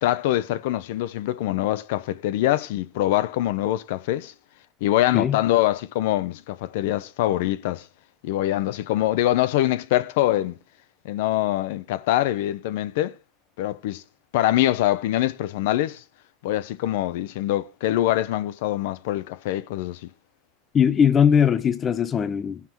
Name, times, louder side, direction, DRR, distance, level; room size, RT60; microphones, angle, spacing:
voice 1, 0.0-4.3 4.8-7.9 8.2-10.6 11.0-13.1 13.6-14.0 14.3-16.0 16.4-20.1, left 14 dB, 75° left, 0.6 m, -24 dB
voice 2, 20.7-22.6, left 8 dB, 20° left, 0.5 m, -20 dB
14.0 x 5.8 x 4.5 m
supercardioid pair, 160°, 0 cm